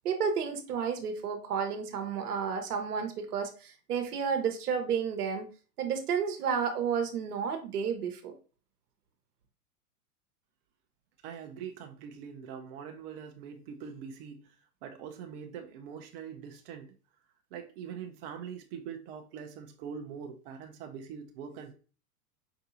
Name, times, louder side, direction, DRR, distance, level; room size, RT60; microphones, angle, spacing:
voice 1, 0.0-5.5 5.8-8.4, right 6 dB, 75° right, 6 dB, 1.0 m, -31 dB
voice 2, 11.2-14.6 14.8-16.9 17.5-21.7, right 7 dB, 40° right, 4 dB, 0.6 m, -43 dB
4.8 x 2.7 x 2.7 m, 0.36 s
hypercardioid pair, 110°, 46 cm